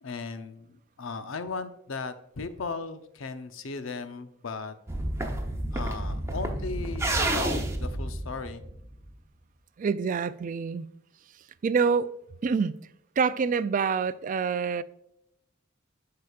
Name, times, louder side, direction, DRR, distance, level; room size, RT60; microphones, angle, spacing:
voice 1, 0.0-4.7 5.7-8.6, left 4 dB, 80° left, 0.6 m, -37 dB
sound 1, 4.9-9.1, right 1 dB, 15° right, 0.8 m, -30 dB
voice 2, 9.8-10.9 11.6-12.1 12.4-12.8 13.2-14.8, right 5 dB, 40° right, 0.3 m, -26 dB
11.0 x 4.8 x 2.4 m
head